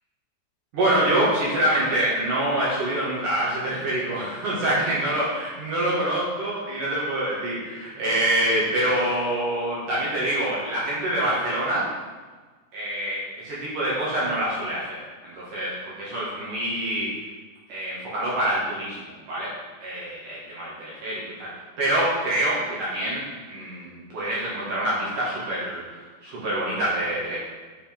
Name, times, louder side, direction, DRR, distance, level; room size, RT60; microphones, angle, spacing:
voice 1, 0.7-11.8 12.7-15.0 15.2-17.1 17.7-19.5 19.8-21.5 21.8-27.4, right 1 dB, 55° right, -8 dB, 2.7 m, -26 dB
7.2 x 6.9 x 3.7 m, 1.4 s
omnidirectional pair, 5.9 m